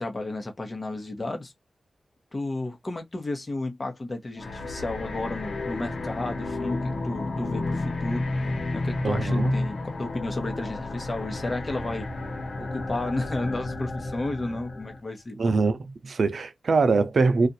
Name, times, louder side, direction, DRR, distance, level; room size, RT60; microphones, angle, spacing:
voice 1, 0.0-1.5 2.3-12.1 12.6-15.4, left 2 dB, 40° left, 1.0 m, -33 dB
sound 1, 4.4-15.0, left 2 dB, 80° left, 1.0 m, -31 dB
voice 2, 9.0-9.5 15.4-17.5, right 4 dB, 70° right, 0.5 m, -23 dB
2.5 x 2.4 x 4.0 m
cardioid pair, 65°, 0 cm